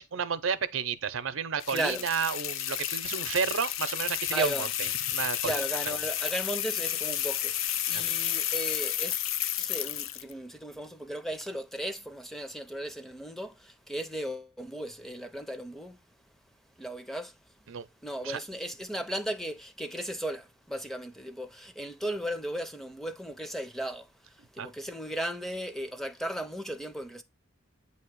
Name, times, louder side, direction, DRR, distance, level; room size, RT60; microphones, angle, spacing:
voice 1, 0.0-6.0 7.9-8.2 17.7-17.9 18.2-18.4 24.6-24.7, right 6 dB, 80° right, 0.6 m, -32 dB
sound 1, 1.6-10.3, left 11 dB, 80° left, 0.5 m, -31 dB
voice 2, 1.7-2.0 4.3-4.7 5.4-9.2 9.6-16.0 16.8-17.3 18.0-27.2, right 1 dB, ahead, 0.5 m, -36 dB
8.3 x 2.9 x 4.5 m
head